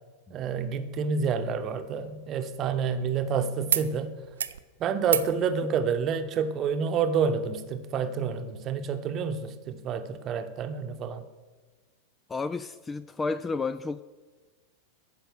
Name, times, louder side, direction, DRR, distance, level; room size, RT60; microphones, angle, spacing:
voice 1, 0.3-4.1 4.8-11.2, right 6 dB, 30° right, 8 dB, 0.9 m, -28 dB
sound 1, 1.5-3.3 3.7-3.9 4.2-4.6 5.0-5.3 6.7-6.8, right 8 dB, 65° right, 0.4 m, -32 dB
voice 2, 12.3-14.0, left 4 dB, 15° left, 15 dB, 0.3 m, -31 dB
14.0 x 5.3 x 6.7 m, 1.3 s
figure-of-eight pair, 90°, 0 cm